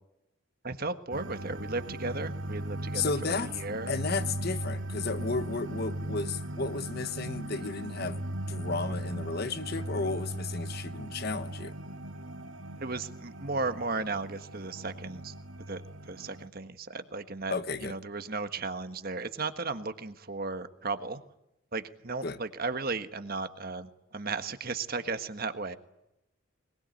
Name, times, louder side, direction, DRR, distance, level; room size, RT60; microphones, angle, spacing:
voice 1, 0.6-4.0 12.8-15.3 15.7-17.5 17.8-21.2 21.7-25.8, right 3 dB, 45° right, 1.5 m, -35 dB
sound 1, 1.1-16.5, right 1 dB, 65° right, 2.6 m, -38 dB
voice 2, 2.9-3.6 3.9-11.7 17.5-17.9 22.2-22.4, left 4 dB, 45° left, 1.2 m, -33 dB
22.5 x 21.5 x 9.2 m
head